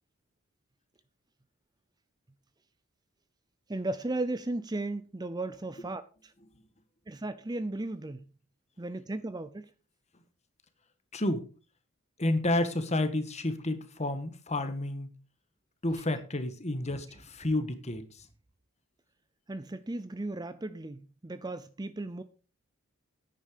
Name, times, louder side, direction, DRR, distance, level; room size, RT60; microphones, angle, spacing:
voice 1, 3.7-6.3 7.1-8.2 8.8-9.7 16.9-17.0 19.5-22.2, right 2 dB, 20° right, 0.5 m, -35 dB
voice 2, 11.1-11.5 12.2-15.1 15.8-18.0, left 1 dB, 30° left, 1.5 m, -30 dB
10.5 x 9.1 x 5.0 m
head